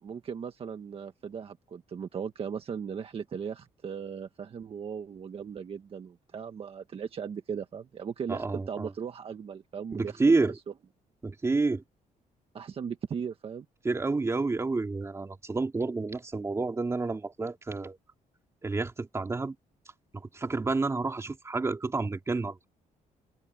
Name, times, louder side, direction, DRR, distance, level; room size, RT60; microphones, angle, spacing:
voice 1, 0.0-10.2 12.5-13.6, right 7 dB, 40° right, 1.6 m, -37 dB
voice 2, 8.3-8.9 9.9-10.6 11.2-11.8 13.8-18.0 18.6-19.5 20.1-22.6, right 3 dB, 20° right, 2.8 m, -29 dB
open air
cardioid pair, 140°, 14 cm